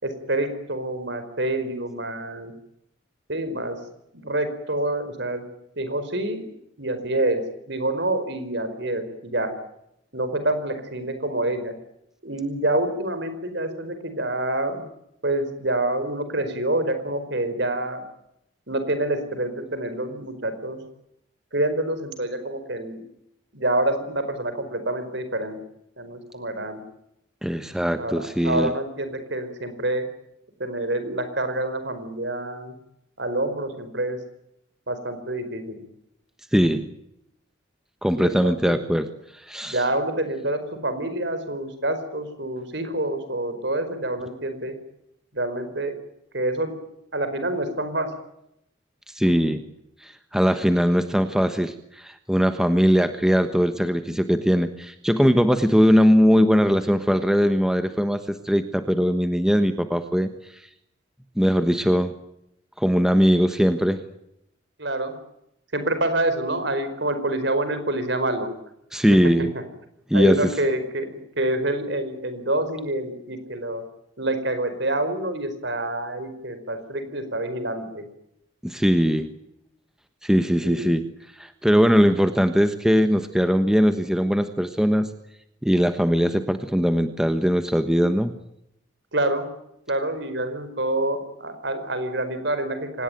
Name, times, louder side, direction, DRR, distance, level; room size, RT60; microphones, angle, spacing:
voice 1, 0.0-2.5 3.3-3.8 4.1-5.4 5.8-6.4 6.8-7.4 7.7-9.5 10.1-11.7 12.2-14.8 15.2-18.0 18.7-20.8 21.5-23.0 23.5-25.6 26.0-26.8 28.0-30.0 30.6-32.7 33.2-34.2 34.9-35.8 38.2-38.8 39.6-44.7 45.3-45.9 46.3-46.7 47.1-48.1 64.8-65.1 65.7-68.5 70.1-71.1 71.4-73.8 74.2-78.0 80.6-80.9 89.1-89.4 89.9-93.0, right 1 dB, 60° right, 10 dB, 4.9 m, -27 dB
voice 2, 27.4-28.7 36.5-36.9 38.0-39.1 39.3-39.8 49.1-49.6 50.0-60.3 61.4-62.1 62.8-64.0 68.9-69.5 70.1-70.6 78.6-79.3 80.2-81.0 81.4-85.1 85.6-88.3, equal, 5° right, 8 dB, 1.2 m, -20 dB
25.5 x 19.5 x 9.2 m, 0.80 s
head